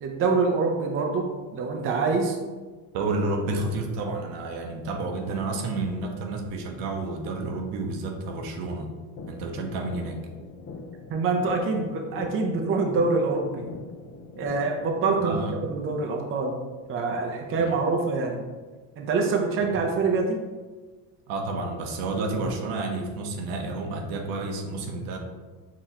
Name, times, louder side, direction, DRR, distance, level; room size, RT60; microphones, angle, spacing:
voice 1, 0.0-2.4 11.1-13.6 14.4-16.5 16.9-18.4 19.0-20.4, right 4 dB, 30° right, 1 dB, 0.5 m, -25 dB
voice 2, 2.9-8.9 9.3-10.2 15.2-15.6 17.6-17.7 21.3-25.2, right 2 dB, 70° right, 3 dB, 0.9 m, -30 dB
sound 1, 9.2-15.2, left 4 dB, 30° left, 0.4 m, -42 dB
4.8 x 3.0 x 2.8 m, 1.3 s
supercardioid pair, 105°, 46 cm